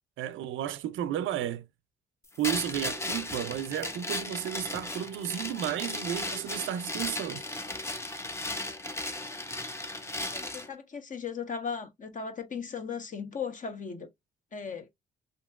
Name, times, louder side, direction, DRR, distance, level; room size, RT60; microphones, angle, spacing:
voice 1, 0.2-1.7 2.4-7.4, right 11 dB, 80° right, 0.5 m, -33 dB
sound 1, 2.4-10.7, left 2 dB, 15° left, 0.6 m, -36 dB
voice 2, 10.3-14.1 14.5-14.9, left 6 dB, 40° left, 0.9 m, -37 dB
2.9 x 2.8 x 2.2 m
cardioid pair, 90°, 20 cm